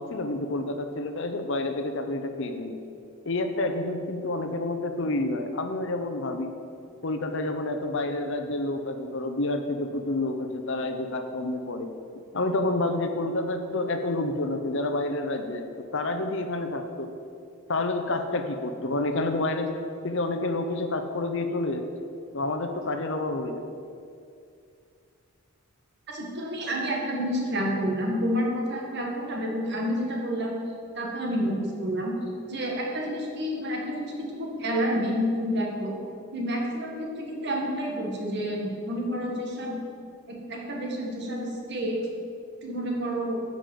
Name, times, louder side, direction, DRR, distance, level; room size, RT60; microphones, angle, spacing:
voice 1, 0.0-2.8 3.2-6.5 7.0-11.9 12.3-17.1 17.7-19.7 20.0-21.9 22.3-23.6, left 2 dB, 55° left, 6 dB, 0.7 m, -29 dB
voice 2, 26.1-30.6 30.9-32.2 32.4-35.9 36.3-39.8 40.3-42.0 42.6-43.4, equal, 50° right, -1 dB, 1.7 m, -29 dB
10.0 x 5.3 x 7.5 m, 2.4 s
head